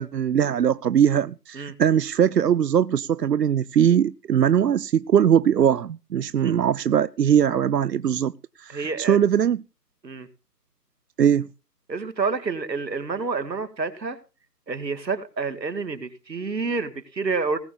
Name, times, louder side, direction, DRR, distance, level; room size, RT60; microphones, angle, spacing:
voice 1, 0.0-8.3 8.6-9.6 11.2-11.5, right 9 dB, 75° right, 0.7 m, -21 dB
voice 2, 8.7-9.2 10.0-10.3 11.9-14.2 14.7-17.6, right 4 dB, 90° right, 2.3 m, -28 dB
19.5 x 7.0 x 5.5 m
figure-of-eight pair, 160°, 49 cm